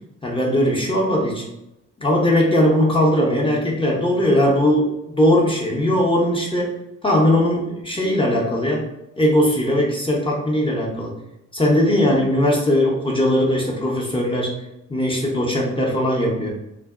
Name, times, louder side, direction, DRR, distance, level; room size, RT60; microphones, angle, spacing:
voice 1, 0.2-1.4 2.0-6.7 7.0-8.9 9.2-11.1 11.5-14.5 14.9-16.5, left 1 dB, 15° left, -4 dB, 0.7 m, -19 dB
2.5 x 2.1 x 2.3 m, 0.87 s
hypercardioid pair, 45°, 37 cm